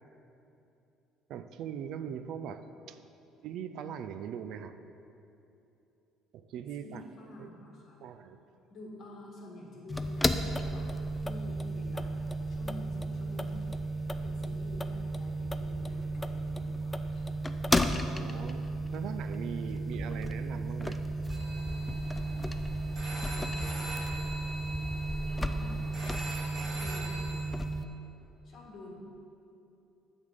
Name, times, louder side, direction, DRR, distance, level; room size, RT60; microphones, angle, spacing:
voice 1, 1.3-2.6 2.9-3.0 3.4-4.8 6.3-7.0 7.4-7.5 8.0-8.4 18.2-21.0, right 8 dB, 70° right, 10 dB, 0.3 m, -40 dB
voice 2, 6.8-8.0 8.7-12.1 12.5-13.8 14.1-17.3 23.3-24.2 25.3-27.4 28.4-28.9, left 1 dB, 50° left, -2 dB, 1.8 m, -49 dB
sound 1, 9.9-27.9, right 1 dB, 10° left, 0.4 m, -33 dB
sound 2, 21.3-27.4, right 1 dB, 35° right, 1.6 m, -42 dB
8.5 x 3.6 x 6.5 m, 2.8 s
cardioid pair, 100°, 0 cm